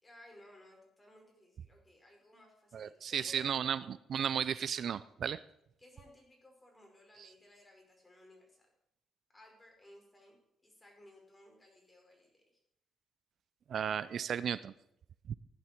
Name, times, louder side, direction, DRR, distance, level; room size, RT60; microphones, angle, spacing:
voice 1, 0.0-3.9 5.8-8.7 9.3-10.4 10.6-12.5, left 1 dB, 20° left, 1 dB, 5.3 m, -59 dB
voice 2, 2.7-5.4 7.2-7.3 13.7-14.7 15.3-15.4, right 8 dB, 60° right, 16 dB, 0.4 m, -34 dB
16.0 x 11.0 x 4.5 m, 0.77 s
supercardioid pair, 75°, 0 cm